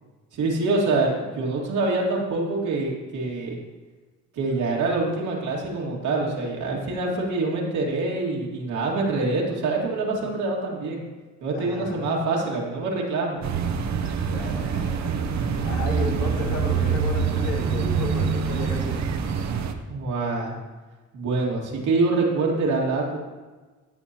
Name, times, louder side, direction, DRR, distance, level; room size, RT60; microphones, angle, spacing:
voice 1, 0.3-3.6 4.4-11.0 11.4-13.4 19.9-20.6 21.1-23.2, right 3 dB, 80° right, -2 dB, 2.2 m, -25 dB
voice 2, 11.5-12.1 14.3-15.2 15.6-19.0, left 3 dB, 85° left, -1 dB, 2.3 m, -33 dB
sound 1, 13.4-19.7, right 6 dB, 65° right, 0.9 m, -25 dB
15.0 x 6.8 x 2.9 m, 1.3 s
cardioid pair, 90°, 30 cm